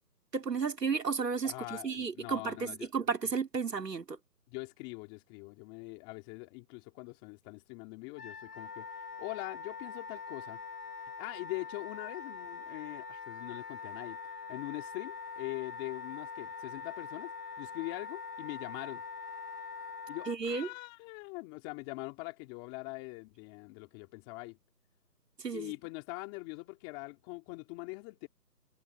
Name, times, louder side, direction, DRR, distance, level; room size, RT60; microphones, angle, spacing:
voice 1, 0.3-4.2 20.3-20.7 25.4-25.7, right 5 dB, 75° right, 3.5 m, -33 dB
voice 2, 1.4-2.9 4.5-8.9 9.2-10.6 11.2-14.2 14.5-17.3 17.6-19.0 20.1-24.6 25.5-28.3, left 26 dB, 10° left, 2.7 m, -43 dB
Wind instrument woodwind instrument, 8.2-20.4, left 5 dB, 70° left, 5.4 m, -43 dB
hypercardioid pair, 165°, 49 cm